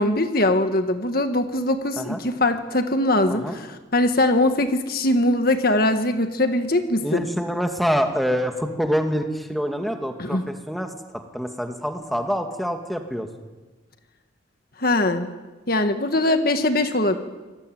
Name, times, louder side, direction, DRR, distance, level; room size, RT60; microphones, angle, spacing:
voice 1, 0.0-7.3 10.2-10.5 14.8-15.3 15.7-17.2, left 1 dB, 50° left, 7 dB, 1.7 m, -21 dB
voice 2, 7.0-13.3, equal, ahead, 4 dB, 2.3 m, -26 dB
25.5 x 22.0 x 9.4 m, 1.2 s
head